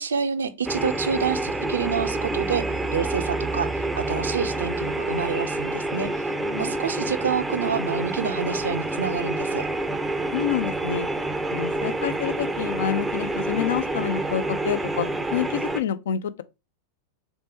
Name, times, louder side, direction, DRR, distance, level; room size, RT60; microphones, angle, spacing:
voice 1, 0.0-2.6 2.9-6.3 6.6-9.7, right 6 dB, 70° right, 0.4 m, -28 dB
sound 1, 0.7-15.8, right 2 dB, 5° right, 0.4 m, -28 dB
voice 2, 6.4-6.7 10.3-11.1 11.5-16.4, left 9 dB, 60° left, 0.3 m, -28 dB
3.2 x 3.0 x 3.2 m
figure-of-eight pair, 90°, 0 cm